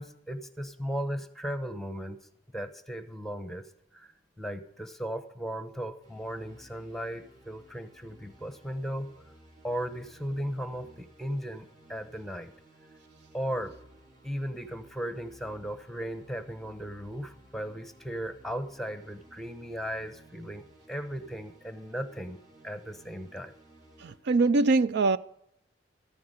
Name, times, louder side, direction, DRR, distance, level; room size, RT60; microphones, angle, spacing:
voice 1, 0.0-2.2 2.5-9.1 9.6-12.5 13.3-13.8 14.2-22.4 22.6-23.5, equal, ahead, 0.9 m, -36 dB
sound 1, 6.0-24.2, right 1 dB, 40° right, 3.2 m, -57 dB
voice 2, 24.0-25.2, right 3 dB, 60° right, 0.4 m, -23 dB
14.0 x 9.5 x 6.4 m
head